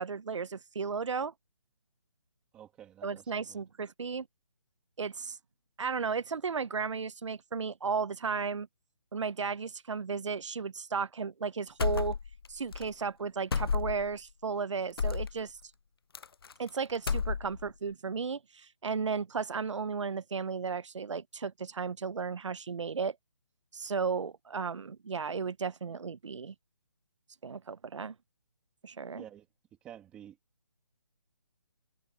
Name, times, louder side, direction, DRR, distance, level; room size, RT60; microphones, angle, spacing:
voice 1, 0.0-1.3 3.0-4.3 5.0-5.4 5.8-8.7 9.1-12.2 12.5-15.6 16.6-23.2 23.7-26.5 27.4-28.1 28.8-29.2, right 5 dB, 80° right, 0.8 m, -34 dB
voice 2, 2.5-3.6 29.1-29.5 29.8-30.4, right 10 dB, 5° right, 2.4 m, -50 dB
sound 1, 11.8-12.5 12.7-12.9 13.5-14.1 15.0-15.3 16.1-16.7 17.0-17.7, left 6 dB, 55° left, 0.5 m, -31 dB
hypercardioid pair, 180°, 15 cm